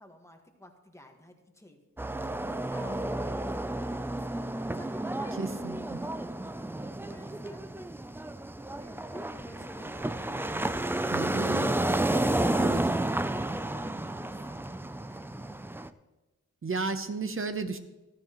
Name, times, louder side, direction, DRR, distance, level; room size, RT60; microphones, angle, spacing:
voice 1, 0.0-1.8 2.7-6.1 7.0-7.7 8.6-11.3 12.1-12.6 13.5-14.6 15.0-15.2, left 1 dB, 10° left, 4 dB, 1.5 m, -50 dB
sound 1, 2.0-15.9, right 1 dB, 5° right, 0.4 m, -31 dB
voice 2, 5.4-6.0 11.1-11.8 12.6-12.7 16.6-17.8, right 4 dB, 45° right, 9 dB, 0.8 m, -33 dB
14.0 x 13.5 x 3.0 m, 1.1 s
wide cardioid pair, 115°, 31 cm